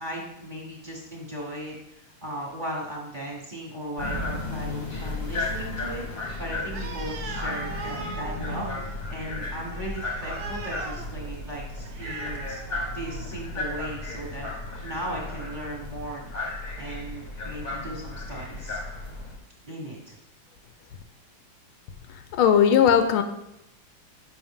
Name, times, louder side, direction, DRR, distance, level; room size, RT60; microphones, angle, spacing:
voice 1, 0.0-18.8 19.6-20.1, right 1 dB, 25° right, -3 dB, 1.3 m, -37 dB
sound 1, 4.0-19.4, left 2 dB, 30° left, 0.9 m, -34 dB
Animal, 6.7-13.4, right 4 dB, 55° right, 1.2 m, -40 dB
voice 2, 22.4-23.2, left 8 dB, 85° left, 9 dB, 1.5 m, -18 dB
7.0 x 5.6 x 3.6 m, 0.85 s
omnidirectional pair, 2.3 m